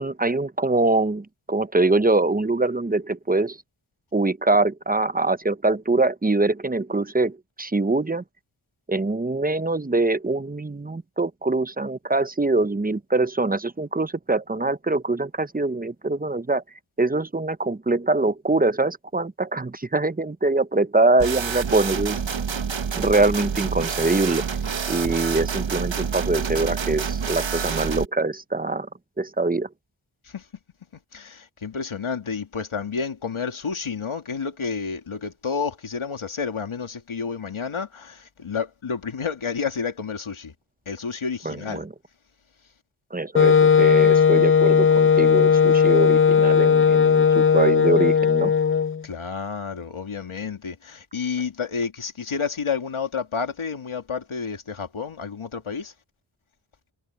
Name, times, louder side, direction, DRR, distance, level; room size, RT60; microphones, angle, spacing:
voice 1, 0.0-3.6 4.1-8.2 8.9-16.6 17.0-22.2 22.9-24.5 24.9-28.9 29.2-29.7 41.4-41.9 43.1-48.5, right 2 dB, 20° right, 0.7 m, -23 dB
sound 1, 21.2-28.0, right 6 dB, 65° right, 1.2 m, -28 dB
voice 2, 31.1-40.5 40.9-41.9 49.0-55.9, left 5 dB, 75° left, 2.4 m, -30 dB
Wind instrument woodwind instrument, 43.3-49.0, left 6 dB, 30° left, 0.4 m, -17 dB
wide cardioid pair, 90°, 49 cm